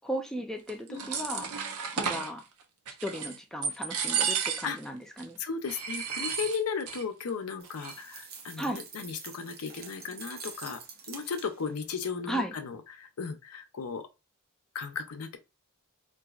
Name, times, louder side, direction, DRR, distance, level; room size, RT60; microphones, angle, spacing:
voice 1, 0.0-1.5 2.0-2.4 3.0-5.4 8.6-8.8 12.3-12.5, equal, ahead, 0.5 m, -35 dB
sound 1, 0.7-2.3 2.9-3.4 3.6-4.8 5.2-5.3 5.7-7.0 7.3-7.4 7.6-8.2, right 6 dB, 80° right, 0.6 m, -32 dB
voice 2, 5.4-10.8 11.1-14.1 14.7-15.4, left 5 dB, 70° left, 0.6 m, -35 dB
sound 2, 7.6-11.8, right 5 dB, 45° right, 0.7 m, -46 dB
4.0 x 2.6 x 2.4 m
head